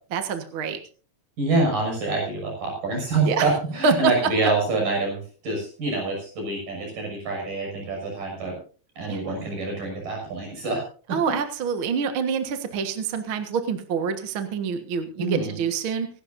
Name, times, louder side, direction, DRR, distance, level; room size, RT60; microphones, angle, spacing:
voice 1, 0.1-0.8 3.3-3.5 3.8-4.1 4.4-4.5 9.1-9.2 11.1-16.1, right 5 dB, 50° right, 7 dB, 1.7 m, -26 dB
voice 2, 1.4-8.5 9.0-10.8 15.2-15.6, right 3 dB, 75° right, 1 dB, 8.1 m, -26 dB
25.0 x 12.0 x 2.7 m, 0.39 s
omnidirectional pair, 3.9 m